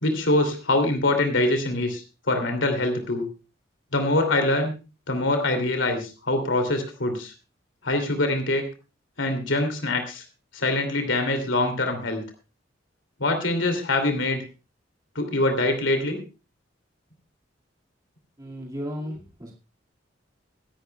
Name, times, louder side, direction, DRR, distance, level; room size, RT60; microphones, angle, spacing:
voice 1, 0.0-3.3 3.9-4.7 5.1-7.3 7.8-8.6 9.2-10.2 10.5-12.2 13.2-14.4 15.1-16.2, left 2 dB, 85° left, 6 dB, 2.7 m, -24 dB
voice 2, 18.4-19.5, equal, 20° right, -1 dB, 2.1 m, -35 dB
23.5 x 11.0 x 2.3 m, 0.31 s
head